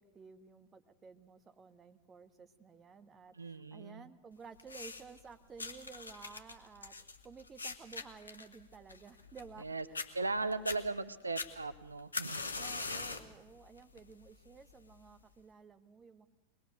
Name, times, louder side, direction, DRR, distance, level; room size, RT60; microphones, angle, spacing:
voice 1, 0.0-10.7 12.5-16.3, right 5 dB, 20° right, 8 dB, 1.6 m, -54 dB
voice 2, 3.3-4.0 9.6-9.8 10.1-12.4, right 3 dB, 80° right, 13 dB, 0.8 m, -37 dB
sound 1, 4.6-5.2 5.6-9.6 9.9-10.1 10.5-10.8 11.4-13.3 13.8-14.1 14.9-15.0, left 3 dB, 75° left, 1.7 m, -41 dB
23.0 x 21.0 x 6.6 m, 0.97 s
figure-of-eight pair, 90°, 0 cm